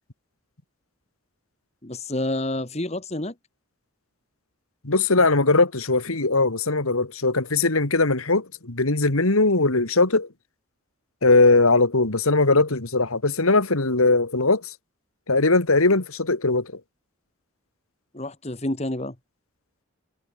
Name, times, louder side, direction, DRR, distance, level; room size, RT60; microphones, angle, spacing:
voice 1, 1.8-3.3 18.1-19.2, left 1 dB, 30° left, 1.8 m, -29 dB
voice 2, 4.8-10.3 11.2-14.7 15.3-16.7, left 3 dB, 80° left, 2.4 m, -20 dB
head